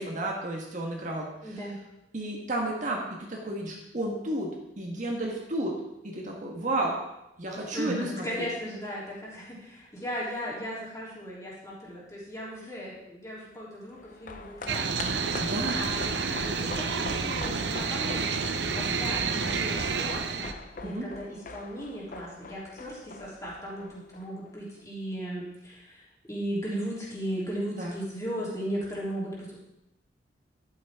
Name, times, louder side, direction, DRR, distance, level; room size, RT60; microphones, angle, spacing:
voice 1, 0.0-1.6 2.1-4.5 4.8-5.8 6.0-6.9 7.4-8.5 15.4-15.8 20.8-21.0 27.8-27.9, right 1 dB, 40° right, -1 dB, 1.5 m, -32 dB
voice 2, 1.4-1.8 7.7-14.9 15.2-26.0 26.3-29.6, equal, 15° left, -6 dB, 3.3 m, -37 dB
sound 1, 13.9-24.5 24.8-24.9, left 3 dB, 45° left, 0.7 m, -43 dB
sound 2, 14.7-20.5, right 5 dB, 65° right, 0.8 m, -29 dB
12.0 x 8.6 x 3.7 m, 0.87 s
head